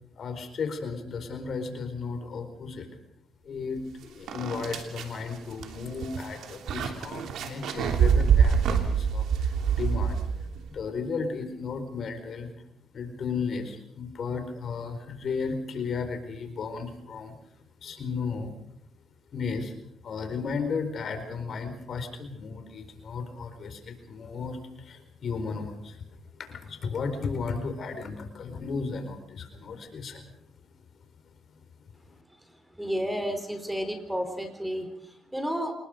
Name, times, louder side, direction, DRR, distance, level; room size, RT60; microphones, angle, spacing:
voice 1, 0.2-2.9 3.4-10.2 10.7-12.5 12.9-17.4 17.8-18.5 19.3-19.7 20.0-26.0 26.3-30.2 30.6-30.7 32.1-32.2, left 5 dB, 55° left, 7 dB, 4.5 m, -34 dB
sound 1, 3.8-3.9 4.3-10.6, right 7 dB, 75° right, 3.1 m, -25 dB
voice 2, 32.8-35.7, equal, 5° right, 7 dB, 4.2 m, -31 dB
27.0 x 20.5 x 5.2 m, 0.75 s
cardioid pair, 90°, 0 cm